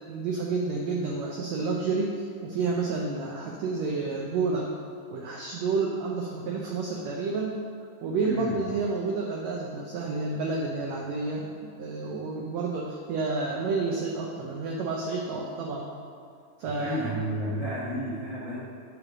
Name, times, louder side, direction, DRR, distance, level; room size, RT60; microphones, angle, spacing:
voice 1, 0.1-4.7 5.1-7.6 8.0-15.9 16.6-17.0, right 4 dB, 80° right, -1 dB, 1.5 m, -30 dB
voice 2, 8.2-8.6 16.8-18.6, equal, 75° left, -9 dB, 1.0 m, -31 dB
8.3 x 3.4 x 6.0 m, 2.2 s
omnidirectional pair, 3.8 m